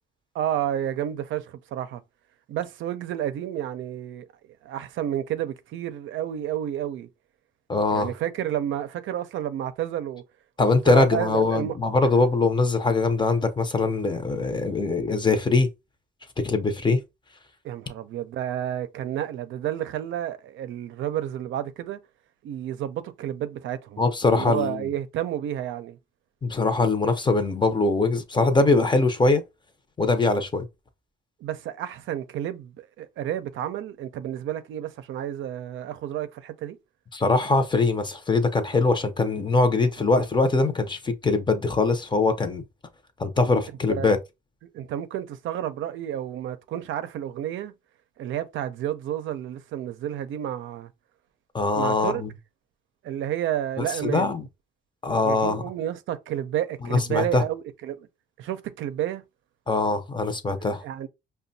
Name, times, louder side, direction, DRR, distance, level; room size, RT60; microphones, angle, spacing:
voice 1, 0.3-2.0 2.5-4.3 4.6-7.1 7.9-10.2 10.9-11.8 17.6-22.0 22.4-24.0 24.3-26.0 31.4-36.8 43.9-44.1 44.7-47.7 48.2-50.9 51.7-52.2 53.0-54.4 55.2-58.1 58.4-59.2 60.8-61.1, right 11 dB, 80° right, 0.5 m, -30 dB
voice 2, 7.7-8.1 10.6-15.7 16.4-17.0 24.0-24.9 26.4-29.4 30.0-30.7 37.1-42.6 43.2-44.2 51.5-52.3 53.8-54.4 55.0-55.6 56.8-57.4 59.7-60.8, left 3 dB, 25° left, 0.6 m, -22 dB
5.0 x 2.2 x 2.6 m
cardioid pair, 90°, 20 cm